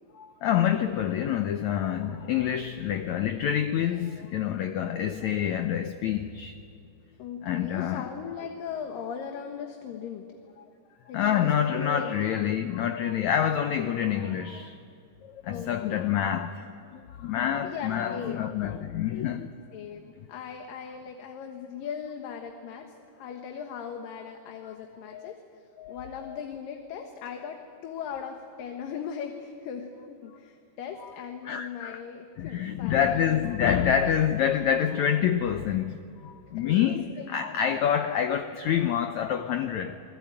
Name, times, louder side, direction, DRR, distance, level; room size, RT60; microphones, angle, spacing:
voice 1, 0.2-6.6 7.4-8.1 11.1-14.7 15.4-19.6 25.1-25.4 25.8-26.4 31.4-32.0 32.4-40.0, left 9 dB, 85° left, 1.6 m, -27 dB
voice 2, 7.2-10.3 11.1-12.7 15.5-16.2 17.6-18.6 19.7-33.5 37.2-37.4, left 7 dB, 70° left, 3.0 m, -39 dB
30.0 x 21.0 x 9.0 m
omnidirectional pair, 4.4 m